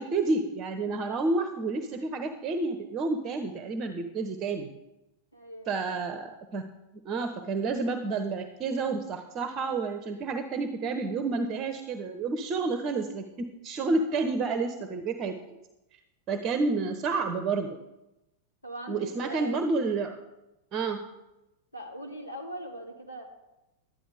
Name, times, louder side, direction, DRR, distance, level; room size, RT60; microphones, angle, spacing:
voice 1, 0.0-4.7 5.7-6.6 7.0-15.6 16.3-17.8 18.9-20.2 20.7-21.0, right 3 dB, 30° right, 8 dB, 0.9 m, -30 dB
voice 2, 5.3-5.8 18.6-19.7 21.7-23.2, right 1 dB, 80° left, 1 dB, 2.3 m, -40 dB
12.0 x 10.0 x 5.0 m, 0.96 s
figure-of-eight pair, 90°, 0 cm